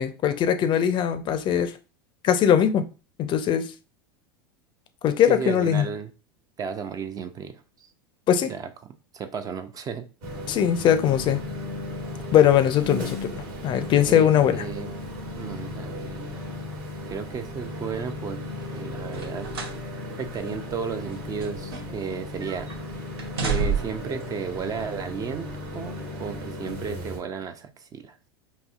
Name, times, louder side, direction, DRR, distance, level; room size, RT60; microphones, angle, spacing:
voice 1, 0.0-1.7 2.2-2.9 3.2-3.7 5.0-5.9 8.3-8.5 10.5-11.4 12.3-14.6, left 9 dB, 40° left, 0.4 m, -21 dB
voice 2, 5.3-6.1 6.6-7.9 8.5-10.1 14.1-15.0 15.4-16.4 17.1-19.5 20.2-22.7 23.4-25.5 25.7-28.2, right 6 dB, 30° right, 0.4 m, -34 dB
sound 1, 10.2-27.2, left 1 dB, 55° right, 1.3 m, -36 dB
sound 2, 19.1-19.8 20.2-20.4 21.1-22.1 22.4-22.8 23.2-24.1 25.0-25.1, right 5 dB, 80° right, 0.7 m, -30 dB
4.1 x 2.7 x 2.4 m
hypercardioid pair, 95°, 13 cm